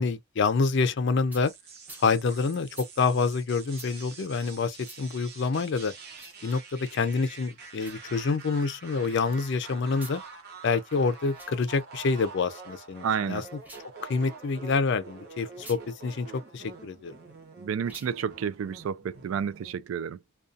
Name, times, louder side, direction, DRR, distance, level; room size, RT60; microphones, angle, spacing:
voice 1, 0.0-1.5 2.0-2.7 3.0-5.9 6.4-10.2 10.6-13.4 14.1-17.1, left 4 dB, 60° left, 0.4 m, -27 dB
sound 1, 1.3-1.5 1.8-2.1 2.7-2.9 3.7-3.9 4.8-5.0 6.1-6.4 7.7-8.0 9.9-10.2 11.2-11.5 13.5-13.9 15.5-15.8 17.8-18.1, right 1 dB, 10° right, 0.7 m, -47 dB
sound 2, 1.4-19.9, right 4 dB, 50° right, 0.9 m, -47 dB
voice 2, 13.0-13.4 17.6-20.2, right 7 dB, 75° right, 0.3 m, -30 dB
2.4 x 2.3 x 2.5 m
head